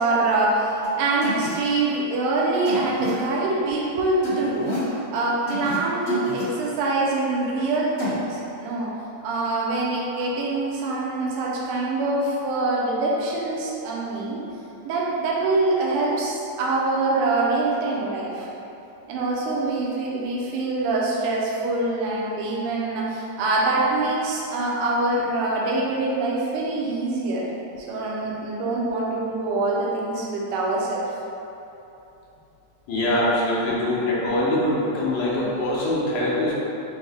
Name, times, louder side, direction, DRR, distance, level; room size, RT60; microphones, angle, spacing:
voice 1, 0.0-8.9 9.2-14.4 14.8-18.5 19.1-27.5 27.8-31.1, right 2 dB, 85° right, -4 dB, 2.2 m, -24 dB
sound 1, 0.8-0.9 1.2-1.5 2.7-3.1 4.2-4.9 5.5-5.8 6.1-6.4 8.0-8.2, left 2 dB, 55° left, 1.9 m, -30 dB
voice 2, 32.9-36.5, left 1 dB, 75° left, -6 dB, 2.0 m, -23 dB
6.1 x 2.1 x 3.4 m, 3.0 s
omnidirectional pair, 3.7 m